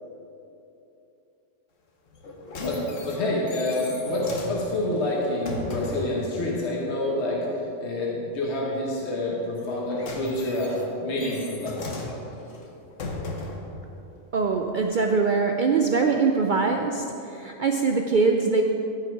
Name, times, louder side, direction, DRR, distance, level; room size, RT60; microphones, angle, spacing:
sound 1, 2.1-6.2 9.6-13.8 14.5-14.6, left 2 dB, 75° left, 1.4 m, -37 dB
voice 1, 2.6-7.5 7.8-11.8, left 1 dB, 60° left, -3 dB, 1.5 m, -27 dB
voice 2, 14.3-18.6, right 4 dB, 60° right, 3 dB, 0.5 m, -23 dB
13.5 x 5.9 x 4.6 m, 2.9 s
omnidirectional pair, 1.3 m